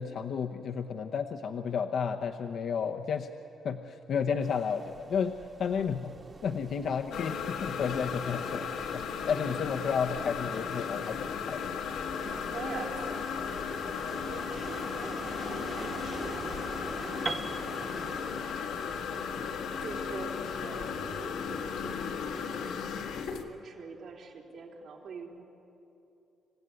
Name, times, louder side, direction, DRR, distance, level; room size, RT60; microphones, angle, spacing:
voice 1, 0.0-3.3 3.6-5.3 5.6-6.1 6.4-8.7 8.9-11.6, left 6 dB, 65° left, 4 dB, 0.9 m, -32 dB
sound 1, 4.4-21.2, right 3 dB, 40° right, 1.8 m, -47 dB
sound 2, 7.1-23.4, left 6 dB, 85° left, 1.8 m, -35 dB
voice 2, 12.2-13.3 13.7-13.8 14.1-15.4 15.7-16.4 19.8-22.8 23.5-25.4, right 4 dB, 70° right, -1 dB, 3.8 m, -44 dB
Piano, 17.3-21.2, right 3 dB, 25° right, 0.7 m, -41 dB
27.0 x 15.5 x 9.6 m, 2.9 s
cardioid pair, 90°, 0 cm